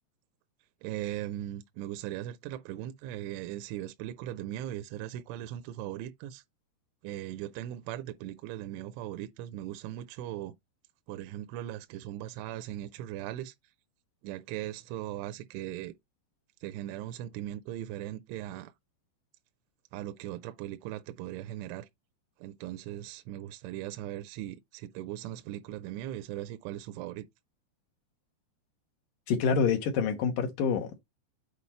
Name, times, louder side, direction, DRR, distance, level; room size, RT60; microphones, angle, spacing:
voice 1, 0.8-6.4 7.0-10.6 11.1-13.5 14.2-15.9 16.6-18.7 19.9-21.9 22.4-27.3, right 13 dB, 85° right, 2.9 m, -39 dB
voice 2, 29.3-31.0, left 6 dB, 85° left, 1.9 m, -27 dB
8.4 x 4.2 x 4.3 m
omnidirectional pair, 5.5 m